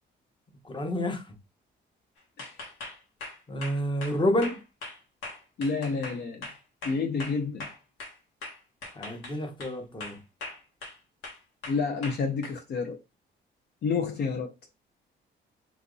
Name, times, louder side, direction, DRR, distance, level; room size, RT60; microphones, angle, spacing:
voice 1, 0.6-1.3 3.5-4.6 8.9-10.2, left 1 dB, 25° left, 0.9 m, -29 dB
sound 1, 2.4-8.1 8.4-9.7 10.0-11.0 11.2-12.5, left 2 dB, 90° left, 1.4 m, -40 dB
voice 2, 5.6-6.5 6.8-7.7 11.7-13.0 13.8-14.5, left 4 dB, 55° left, 0.5 m, -29 dB
2.9 x 2.5 x 3.8 m
cardioid pair, 90°, 20 cm